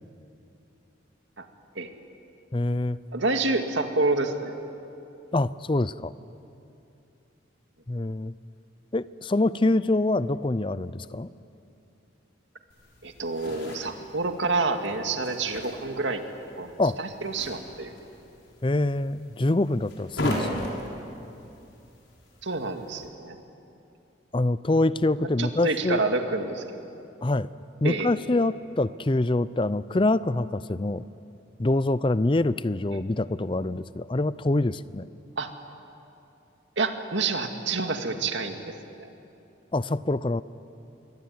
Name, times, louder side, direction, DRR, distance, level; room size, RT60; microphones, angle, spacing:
voice 1, 2.5-3.0 5.3-6.1 7.9-8.3 8.9-11.3 16.8-17.0 18.6-20.7 24.3-26.0 27.2-27.5 27.8-31.0 31.6-35.1 39.7-40.4, left 2 dB, 25° left, 16 dB, 0.5 m, -25 dB
voice 2, 3.1-4.5 13.0-16.2 16.6-18.0 22.4-23.4 25.4-26.7 27.8-28.1 35.4-35.5 36.8-39.1, right 3 dB, 75° right, 5 dB, 2.2 m, -28 dB
sound 1, 12.7-23.1, left 1 dB, 85° left, 6.0 m, -38 dB
26.5 x 22.5 x 9.6 m, 2.8 s
head